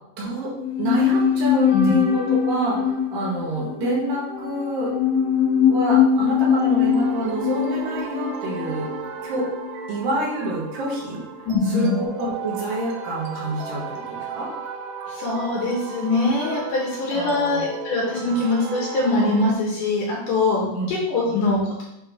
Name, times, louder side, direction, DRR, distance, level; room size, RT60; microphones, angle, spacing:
voice 1, 0.2-0.5 0.8-4.9 5.7-8.9 9.2-9.5 9.9-11.2 11.6-14.5 17.1-17.7 20.7-20.9, right 1 dB, 65° right, -5 dB, 3.0 m, -27 dB
sound 1, 0.6-9.9 10.2-10.3, left 8 dB, 85° left, 2.7 m, -22 dB
sound 2, 6.4-19.5, right 5 dB, 90° right, 2.0 m, -35 dB
voice 2, 11.5-11.9 15.1-21.8, left 2 dB, 70° left, -4 dB, 2.4 m, -23 dB
7.6 x 3.7 x 3.6 m, 0.85 s
omnidirectional pair, 4.5 m